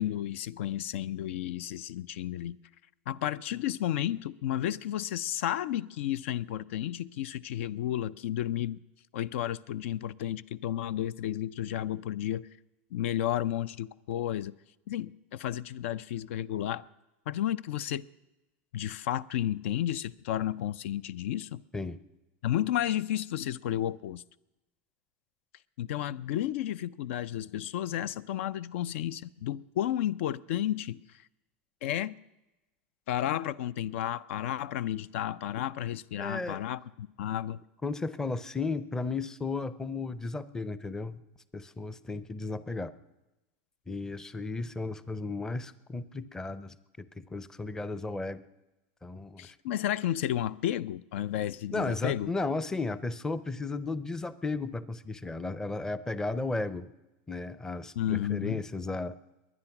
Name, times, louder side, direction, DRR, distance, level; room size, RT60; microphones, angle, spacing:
voice 1, 0.0-2.6 3.1-8.8 9.1-12.5 12.9-14.5 14.9-16.8 17.3-18.1 18.7-21.6 22.4-24.2 25.8-31.0 31.8-32.2 33.1-37.6 49.4-52.3 58.0-58.6, left 12 dB, 80° left, 0.4 m, -32 dB
voice 2, 36.2-36.6 37.8-41.2 41.5-42.9 43.9-48.4 49.0-49.6 51.7-56.9 57.3-59.2, left 3 dB, 10° left, 0.5 m, -34 dB
22.0 x 9.8 x 5.9 m
supercardioid pair, 145°, 7 cm